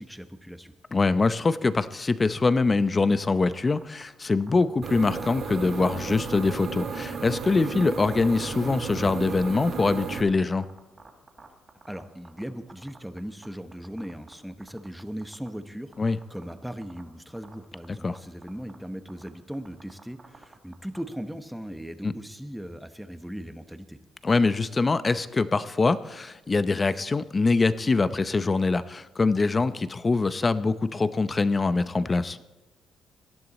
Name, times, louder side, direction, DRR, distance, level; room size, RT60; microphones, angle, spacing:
voice 1, 0.0-0.7 11.9-24.0, equal, ahead, 9 dB, 1.0 m, -38 dB
voice 2, 0.9-10.7 16.0-16.2 18.0-18.2 22.0-22.1 24.2-32.4, left 3 dB, 30° left, 14 dB, 0.6 m, -24 dB
sound 1, 3.5-4.0 4.4-4.6 5.1-6.4 6.6-6.8 7.2-7.4 7.8-7.9 8.3-9.1 9.4-12.4 12.7-13.5 13.7-14.3 14.6-15.5 15.9-16.5 16.8-17.0 17.4-17.8 18.1-18.2 18.4-18.7 19.1-19.3 19.5-21.0, right 3 dB, 30° right, 3.0 m, -48 dB
sound 2, 4.8-10.2, right 5 dB, 65° right, 1.8 m, -34 dB
18.0 x 12.0 x 4.2 m, 1.1 s
cardioid pair, 90°, 0 cm